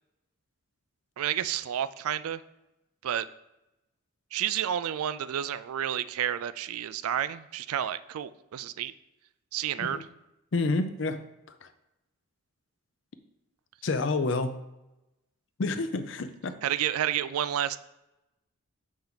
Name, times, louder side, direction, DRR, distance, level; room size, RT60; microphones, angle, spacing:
voice 1, 1.2-2.4 3.0-3.2 4.3-8.9 9.5-10.1 16.6-17.8, right 10 dB, 90° right, 15 dB, 0.3 m, -30 dB
voice 2, 10.5-11.2 13.8-14.5 15.6-16.5, left 3 dB, 60° left, 10 dB, 0.5 m, -28 dB
7.2 x 4.4 x 3.9 m, 0.94 s
head